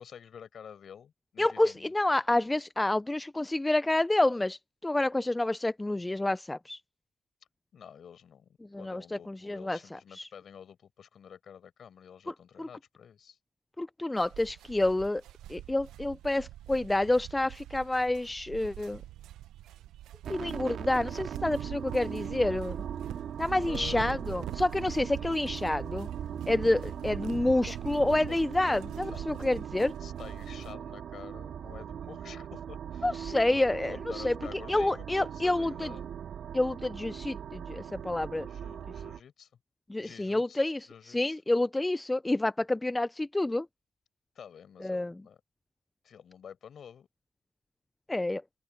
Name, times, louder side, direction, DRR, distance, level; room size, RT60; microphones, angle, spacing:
voice 1, 0.0-1.9 7.7-13.4 23.7-24.2 25.1-25.4 27.7-27.8 28.3-28.4 29.0-29.4 30.0-33.1 33.9-36.1 38.5-39.5 40.0-40.6 40.9-41.4 44.4-45.4 46.0-47.1, left 8 dB, 55° left, 5.6 m, -49 dB
voice 2, 1.4-6.8 8.7-10.3 12.3-12.7 13.8-15.2 15.5-19.0 20.3-22.8 23.4-26.1 26.5-29.9 33.0-35.9 36.5-38.5 39.9-43.7 44.8-45.1 48.1-48.4, left 2 dB, 15° left, 0.4 m, -29 dB
sound 1, 14.2-30.8, right 13 dB, 85° right, 0.7 m, -43 dB
sound 2, 20.2-39.2, right 8 dB, 65° right, 2.0 m, -40 dB
open air
cardioid pair, 90°, 0 cm